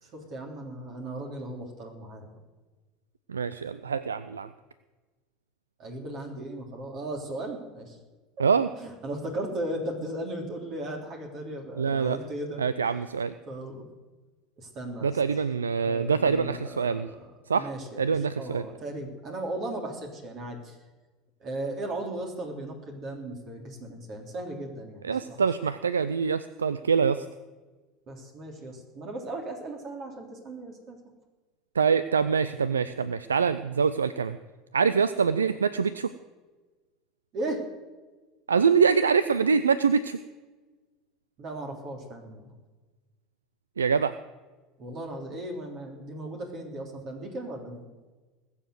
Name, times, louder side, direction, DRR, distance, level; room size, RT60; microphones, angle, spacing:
voice 1, 0.0-2.3 5.8-8.0 8.8-12.6 13.5-13.8 14.6-15.2 15.8-18.0 18.4-20.8 21.4-25.4 28.1-31.0 37.3-37.6 41.4-42.5 44.8-47.8, right 1 dB, 50° right, 2 dB, 3.3 m, -36 dB
voice 2, 3.3-4.5 8.4-8.7 11.8-12.2 12.6-13.3 15.0-17.1 17.5-17.7 18.0-18.6 25.0-27.3 31.7-34.4 34.7-36.1 38.5-40.2 43.8-44.2, right 6 dB, 85° right, 15 dB, 0.4 m, -25 dB
20.0 x 7.2 x 8.0 m, 1.3 s
hypercardioid pair, 75°, 0 cm